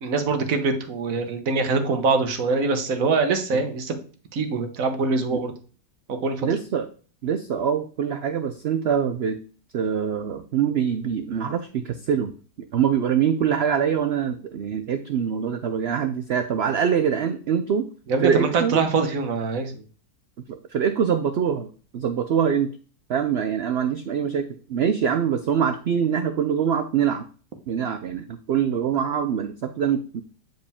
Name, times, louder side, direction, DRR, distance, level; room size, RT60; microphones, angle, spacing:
voice 1, 0.0-4.0 4.3-5.5 6.1-6.5 18.1-19.7, right 4 dB, 60° right, 6 dB, 1.4 m, -23 dB
voice 2, 6.4-6.9 7.2-9.4 9.7-12.3 12.7-17.8 18.2-18.8 20.5-22.7 23.1-27.3 27.7-30.2, right 8 dB, 85° right, 10 dB, 0.5 m, -24 dB
9.2 x 4.9 x 3.5 m, 0.39 s
omnidirectional pair, 1.7 m